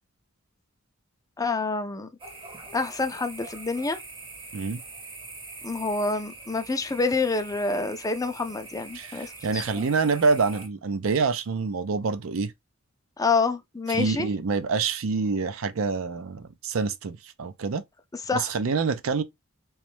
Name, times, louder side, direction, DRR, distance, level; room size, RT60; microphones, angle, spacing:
voice 1, 1.4-2.1 2.7-4.0 5.6-9.6 13.2-14.3 18.1-18.5, left 3 dB, 15° left, 0.4 m, -27 dB
sound 1, 2.2-10.7, right 3 dB, 25° right, 0.8 m, -43 dB
voice 2, 8.9-12.5 13.9-17.8 18.3-19.2, right 4 dB, 65° right, 0.5 m, -26 dB
3.2 x 3.0 x 3.1 m
head